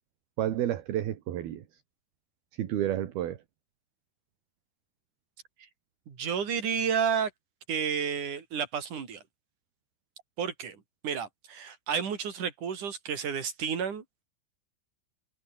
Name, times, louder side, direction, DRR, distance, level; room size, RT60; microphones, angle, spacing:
voice 1, 0.4-1.6 2.6-3.4, right 12 dB, 60° right, 3.3 m, -30 dB
voice 2, 6.1-7.3 7.7-9.2 10.4-14.0, right 7 dB, 45° right, 4.7 m, -31 dB
omnidirectional pair, 5.7 m